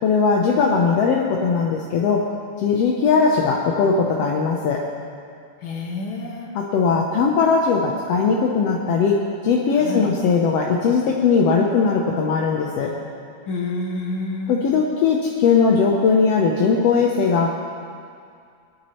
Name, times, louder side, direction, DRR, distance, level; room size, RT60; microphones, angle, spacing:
voice 1, 0.0-2.3 2.6-4.8 6.5-9.2 9.4-12.9 14.5-17.6, left 5 dB, 70° left, -1 dB, 1.6 m, -19 dB
voice 2, 5.6-6.5 9.8-10.1 13.5-14.6, left 3 dB, 45° left, -1 dB, 2.0 m, -28 dB
20.0 x 12.5 x 3.1 m, 2.3 s
omnidirectional pair, 3.8 m